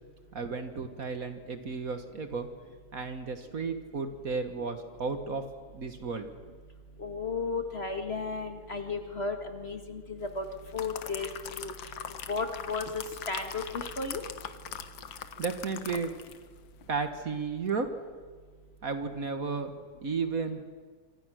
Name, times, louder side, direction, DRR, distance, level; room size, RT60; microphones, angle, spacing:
voice 1, 0.3-2.5 2.9-5.4 5.7-6.3 15.4-16.1 16.9-17.9 18.8-19.7 20.0-20.6, right 4 dB, 50° right, 7 dB, 1.8 m, -33 dB
voice 2, 7.0-10.4 10.7-11.7 12.3-14.2, left 4 dB, 35° left, 5 dB, 2.0 m, -34 dB
sound 1, 10.4-16.5 16.8-17.0, left 8 dB, 80° left, 1.9 m, -41 dB
26.0 x 25.5 x 6.4 m, 1.5 s
omnidirectional pair, 2.0 m